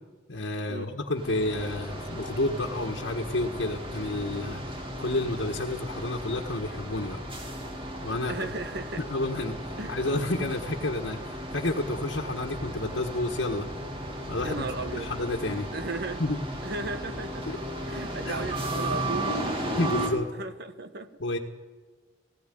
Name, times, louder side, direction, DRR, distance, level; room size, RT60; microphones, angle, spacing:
voice 1, 0.3-4.6 5.0-7.2 8.0-8.3 9.1-13.7 14.3-15.7 16.2-16.4 17.5-17.6 18.2-18.3 19.8-20.3 21.2-21.4, left 2 dB, 70° left, 0 dB, 1.5 m, -30 dB
sound 1, 1.2-20.1, right 1 dB, 30° right, 2.7 m, -35 dB
voice 2, 8.3-9.0 9.8-9.9 14.4-15.1 15.7-16.2 16.6-17.4 17.9-19.5 20.3-21.1, right 3 dB, 60° right, 9 dB, 1.4 m, -35 dB
17.5 x 16.5 x 9.3 m, 1.4 s
head